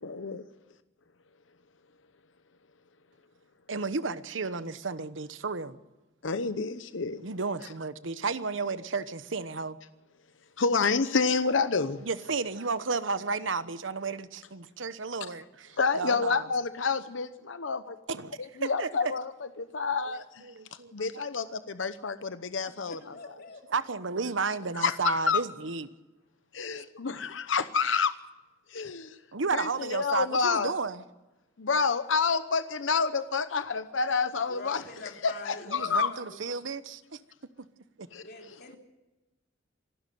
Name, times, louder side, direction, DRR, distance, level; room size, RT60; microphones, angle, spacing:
voice 1, 0.0-0.4 6.2-7.2 10.6-12.0 15.8-18.0 18.4-19.3 19.6-20.4 20.9-23.1 24.8-25.4 26.5-28.1 28.7-29.2 29.5-30.7 31.6-34.8 35.2-36.1 38.1-38.2, left 5 dB, 85° left, 0.9 m, -28 dB
voice 2, 3.7-5.8 7.2-9.8 12.0-16.5 18.1-19.1 20.1-21.2 23.7-25.9 29.3-31.0 35.7-37.2 37.6-37.7 38.0-38.1, right 4 dB, 85° right, 1.1 m, -33 dB
voice 3, 22.9-23.6 34.5-36.4 38.2-38.8, left 3 dB, 60° left, 3.5 m, -44 dB
26.0 x 12.0 x 9.3 m
head